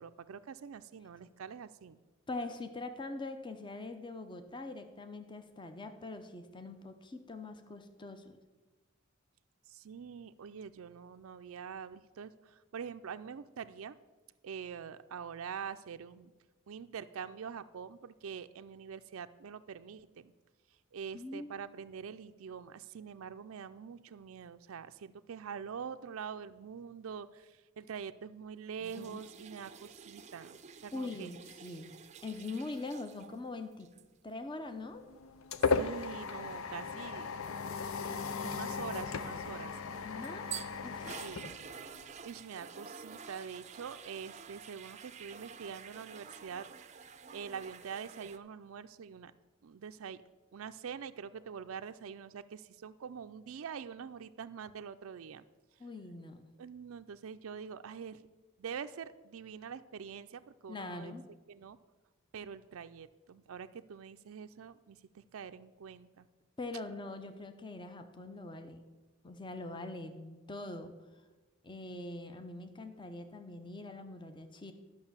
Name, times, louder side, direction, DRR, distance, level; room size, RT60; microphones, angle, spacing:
voice 1, 0.0-2.0 9.7-14.0 14.4-16.3 16.7-20.3 20.9-31.3 35.7-37.3 37.7-39.8 41.2-41.6 41.9-46.7 47.3-49.3 49.6-50.2 50.5-55.4 56.6-58.2 58.6-61.1 61.5-61.8 62.3-66.3, right 7 dB, 90° right, 10 dB, 0.4 m, -45 dB
voice 2, 2.3-8.4 21.1-21.7 28.8-29.2 30.9-31.9 32.2-33.9 34.2-35.0 40.0-40.5 40.8-41.2 55.8-56.5 60.7-61.2 66.6-68.8 69.2-70.9 71.6-74.7, left 2 dB, 25° left, 8 dB, 0.7 m, -43 dB
sound 1, 28.8-33.4 33.7-34.0 39.9-48.4, right 7 dB, 35° right, 0.5 m, -49 dB
sound 2, 34.8-42.2, left 4 dB, 85° left, 0.6 m, -36 dB
11.5 x 6.1 x 7.3 m, 1.2 s
head